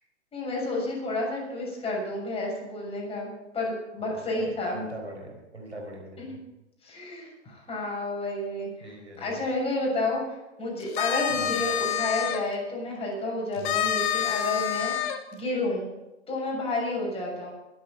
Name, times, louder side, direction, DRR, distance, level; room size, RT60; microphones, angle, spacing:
voice 1, 0.3-4.8 6.2-6.4 6.8-14.9 15.3-15.9 16.3-17.5, left 2 dB, 15° left, -3 dB, 7.0 m, -31 dB
voice 2, 4.1-6.4 8.8-9.3 11.3-11.6 13.6-13.8, right 1 dB, 90° right, 1 dB, 4.1 m, -42 dB
sound 1, 10.8-12.4 13.6-15.2, left 10 dB, 50° left, 1.5 m, -27 dB
22.5 x 8.5 x 5.2 m, 0.97 s
figure-of-eight pair, 100°, 33 cm